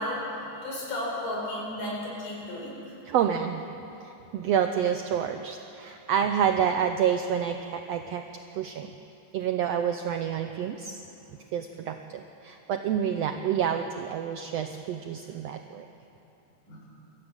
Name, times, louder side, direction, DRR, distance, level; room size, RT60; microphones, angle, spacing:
voice 1, 0.0-2.8 16.7-16.8, left 1 dB, 85° left, -3 dB, 6.6 m, -33 dB
voice 2, 3.0-3.6 4.0-8.2 8.6-9.0 9.3-11.0 11.5-15.8, right 8 dB, 90° right, 6 dB, 1.4 m, -28 dB
23.0 x 14.0 x 8.9 m, 2.9 s
omnidirectional pair, 3.8 m